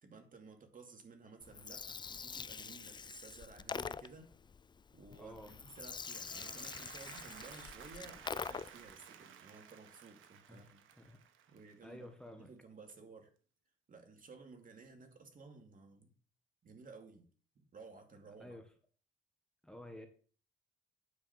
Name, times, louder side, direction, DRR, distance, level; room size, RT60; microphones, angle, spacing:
voice 1, 0.0-4.3 4.9-10.8 11.5-13.3 13.9-16.1 16.6-17.3 17.5-18.6, right 4 dB, 45° right, 4 dB, 2.6 m, -55 dB
Gurgling, 1.4-8.9, left 5 dB, 25° left, 0.4 m, -45 dB
voice 2, 5.2-5.5 10.5-10.7 11.0-11.2 11.8-12.5 18.4-18.6 19.6-20.1, left 1 dB, 5° left, 5 dB, 1.5 m, -51 dB
Applause, 5.8-12.1, right 9 dB, 80° right, 1.4 m, -55 dB
9.5 x 5.0 x 7.3 m, 0.42 s
cardioid pair, 90°, 20 cm